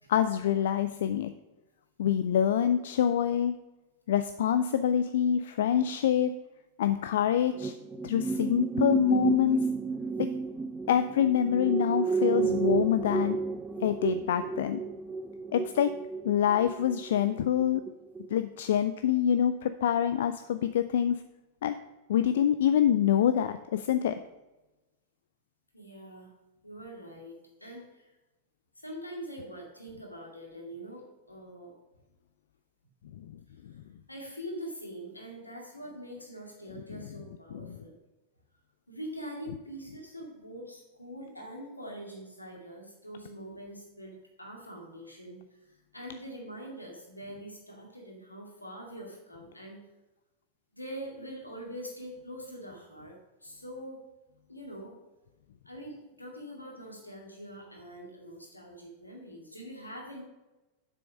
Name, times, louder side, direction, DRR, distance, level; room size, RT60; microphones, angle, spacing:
voice 1, 0.1-1.3 2.0-3.5 4.1-6.3 6.8-7.7 8.0-9.6 10.2-10.3 10.9-13.4 13.8-14.8 15.5-15.9 16.2-17.8 18.3-21.2 21.6-21.8 22.1-24.2 36.9-37.0 37.5-37.6, left 9 dB, 60° left, 11 dB, 0.3 m, -26 dB
sound 1, 7.6-17.9 18.2-18.4, right 5 dB, 15° right, 0.5 m, -31 dB
voice 2, 25.7-26.3 26.6-28.1 28.8-31.8 34.1-38.0 38.9-49.8 50.7-54.0 54.5-55.0 55.6-60.2, equal, 85° left, 0 dB, 2.1 m, -44 dB
7.6 x 6.3 x 5.2 m, 1.1 s
figure-of-eight pair, 90°, 0 cm